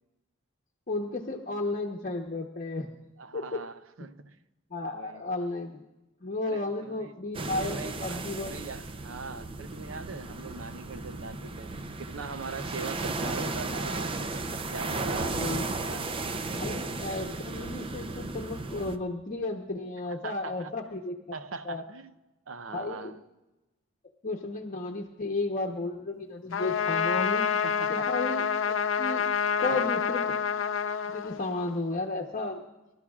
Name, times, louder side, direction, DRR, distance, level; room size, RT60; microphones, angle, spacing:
voice 1, 0.9-2.9 3.3-3.4 4.7-5.8 6.2-8.5 15.3-15.6 16.5-21.1 21.6-21.8 22.7-23.1 24.2-27.5 27.9-29.3 29.6-30.3 30.9-32.6, left 2 dB, 45° left, 0.9 m, -33 dB
voice 2, 3.2-4.4 4.9-5.3 6.5-7.1 7.6-11.7 12.0-16.1 20.1-20.9 21.3-22.1 22.5-23.2 27.6-28.1 29.6-30.1, right 4 dB, 90° right, 0.7 m, -41 dB
sound 1, 7.3-19.0, right 3 dB, 25° right, 0.6 m, -35 dB
Trumpet, 26.5-31.8, left 6 dB, 80° left, 0.7 m, -28 dB
25.5 x 12.5 x 2.4 m
head